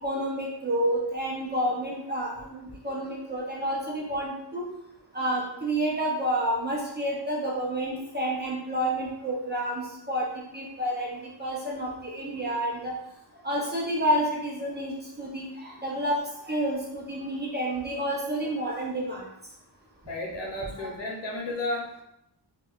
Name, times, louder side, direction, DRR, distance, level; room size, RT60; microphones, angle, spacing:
voice 1, 0.0-4.6 5.1-10.3 10.5-12.9 13.4-16.2 16.5-19.2 20.8-20.9, right 1 dB, 25° right, -4 dB, 0.5 m, -29 dB
voice 2, 20.1-22.0, left 1 dB, 90° left, -1 dB, 0.8 m, -33 dB
4.4 x 2.2 x 2.3 m, 0.81 s
wide cardioid pair, 175°, 42 cm